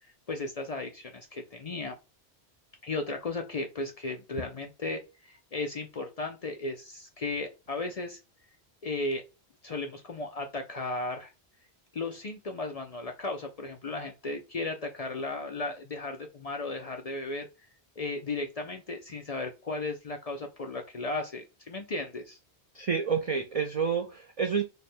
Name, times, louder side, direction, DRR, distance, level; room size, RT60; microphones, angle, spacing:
voice 1, 0.3-2.0 2.8-8.2 8.8-9.2 9.6-11.3 11.9-17.5 18.0-22.4, left 2 dB, 50° left, 0.5 m, -35 dB
voice 2, 22.7-24.6, right 6 dB, 60° right, 0.3 m, -29 dB
3.3 x 2.1 x 4.2 m
omnidirectional pair, 1.1 m